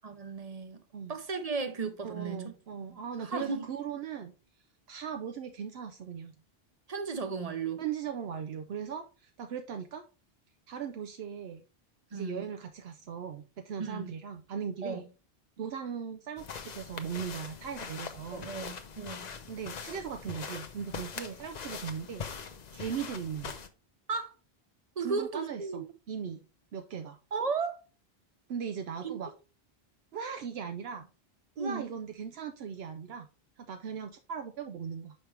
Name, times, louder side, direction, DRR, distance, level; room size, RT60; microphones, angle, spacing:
voice 1, 0.0-0.8 1.1-2.5 2.9-3.7 6.9-7.8 12.1-12.4 13.8-14.1 14.8-15.0 18.3-19.3 24.1-24.3 25.0-25.8 27.3-27.8 29.0-29.3 31.6-31.8, right 4 dB, 40° right, 0.8 m, -35 dB
voice 2, 2.0-4.3 4.9-6.3 7.8-10.0 10.7-11.6 12.1-15.0 15.6-18.5 19.5-22.2 22.7-23.6 25.0-26.4 26.7-27.2 28.5-29.3 30.1-31.1 31.6-33.3 33.6-35.1, right 7 dB, 80° right, 0.9 m, -38 dB
sound 1, 16.4-23.7, left 6 dB, 50° left, 0.7 m, -42 dB
5.9 x 5.5 x 3.2 m
omnidirectional pair, 1.0 m